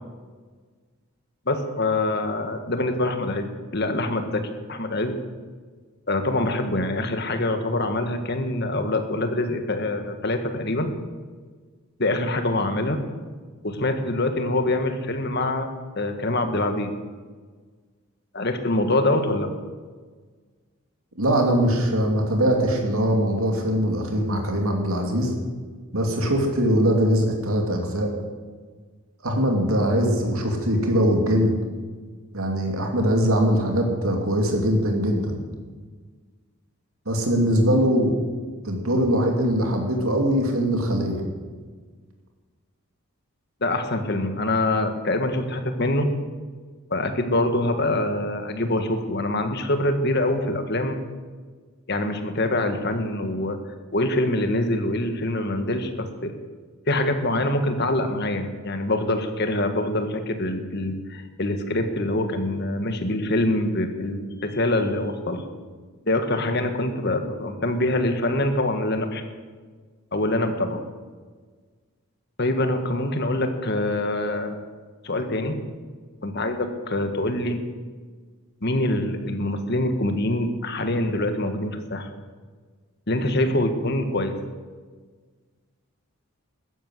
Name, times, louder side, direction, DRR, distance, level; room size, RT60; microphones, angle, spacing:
voice 1, 1.5-4.4 4.7-5.2 6.1-10.9 12.0-13.0 13.6-15.7 16.0-16.9 18.3-19.5 43.6-46.1 46.9-51.0 51.9-53.6 53.9-56.3 56.9-65.4 66.0-69.2 70.1-70.8 72.4-74.6 75.0-75.6 76.2-77.6 78.6-82.1 83.1-84.3, left 1 dB, 50° left, 7 dB, 1.6 m, -25 dB
voice 2, 21.2-25.3 25.9-28.1 29.2-31.5 32.3-35.4 37.1-38.1 38.6-41.2, equal, 80° right, 2 dB, 2.7 m, -22 dB
13.5 x 11.0 x 7.9 m, 1.5 s
head